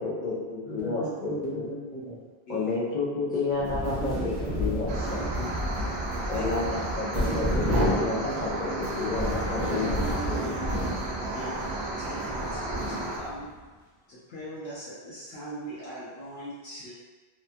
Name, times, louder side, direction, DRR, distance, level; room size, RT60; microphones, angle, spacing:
voice 1, 0.0-1.7 2.5-5.5 6.3-10.2, left 3 dB, 50° left, -5 dB, 0.6 m, -31 dB
voice 2, 0.7-2.2 3.9-5.3 5.6-5.9 7.1-8.9 9.8-10.9, right 2 dB, 10° left, -11 dB, 0.8 m, -37 dB
sound 1, 3.5-13.5, equal, 25° right, 1.0 m, -31 dB
sound 2, 4.9-13.2, right 2 dB, 80° right, 0.8 m, -34 dB
voice 3, 11.3-13.5 14.1-16.9, equal, 70° left, -10 dB, 0.9 m, -40 dB
2.7 x 2.2 x 2.6 m, 1.3 s
omnidirectional pair, 1.1 m